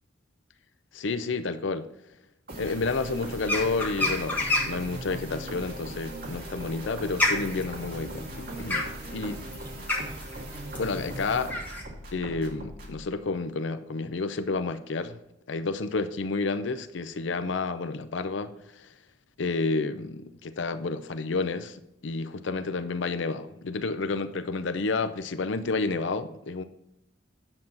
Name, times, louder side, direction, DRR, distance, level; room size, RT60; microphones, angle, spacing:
voice 1, 0.9-1.9 2.6-9.4 10.8-11.5 12.1-15.2 15.5-18.9 19.4-21.8 22.0-26.6, left 3 dB, 75° left, 0.5 m, -30 dB
sound 1, 2.5-13.0, right 1 dB, 50° right, 2.1 m, -39 dB
sound 2, 3.4-4.9 6.2-11.8, left 2 dB, 10° left, 1.5 m, -29 dB
9.8 x 7.2 x 3.9 m
head